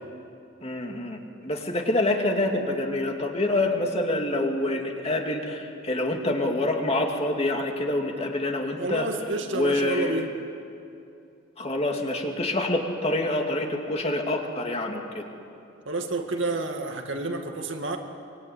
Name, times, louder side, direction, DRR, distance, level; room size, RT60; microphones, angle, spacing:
voice 1, 0.6-9.1 9.5-10.2 11.6-15.3, left 1 dB, 30° left, 2 dB, 2.5 m, -26 dB
voice 2, 8.8-10.3 15.9-18.0, right 2 dB, 60° right, 4 dB, 2.2 m, -29 dB
24.5 x 24.0 x 9.6 m, 2.6 s
head